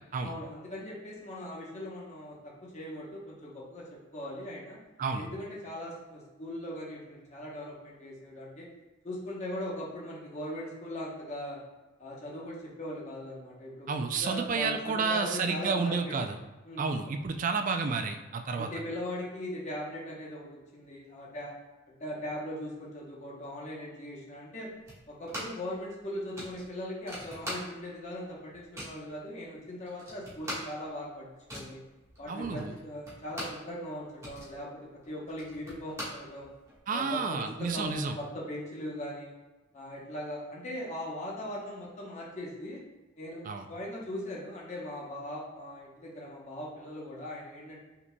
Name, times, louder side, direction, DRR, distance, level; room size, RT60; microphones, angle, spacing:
voice 1, 0.2-4.8 5.1-8.7 9.0-11.6 12.0-16.2 16.6-16.9 18.6-21.5 22.0-24.7 25.1-31.8 32.2-36.5 36.9-39.3 39.7-42.8 43.2-47.9, left 1 dB, 35° left, -4 dB, 0.9 m, -40 dB
voice 2, 13.9-16.4 16.8-18.7 32.3-32.7 36.9-38.2 43.5-43.6, right 4 dB, 40° right, 6 dB, 0.4 m, -30 dB
sound 1, 24.9-25.7 26.0-26.1 26.4-28.0 28.3-29.1 29.6-29.7 29.9-33.7 34.0-36.8, equal, 15° right, 1.4 m, -42 dB
5.7 x 4.0 x 2.2 m, 1.2 s
head